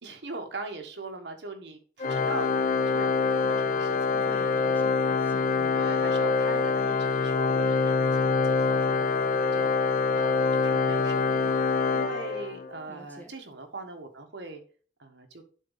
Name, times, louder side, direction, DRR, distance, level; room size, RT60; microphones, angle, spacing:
voice 1, 0.0-2.6 2.9-4.7 5.7-9.8 10.1-11.6 11.9-14.6 15.0-15.4, right 2 dB, 70° right, 5 dB, 1.3 m, -40 dB
Organ, 2.0-12.8, left 4 dB, 40° left, 0.5 m, -25 dB
voice 2, 4.1-5.9 12.9-13.3, equal, 10° left, 0 dB, 1.5 m, -47 dB
10.5 x 4.1 x 3.9 m, 0.42 s
head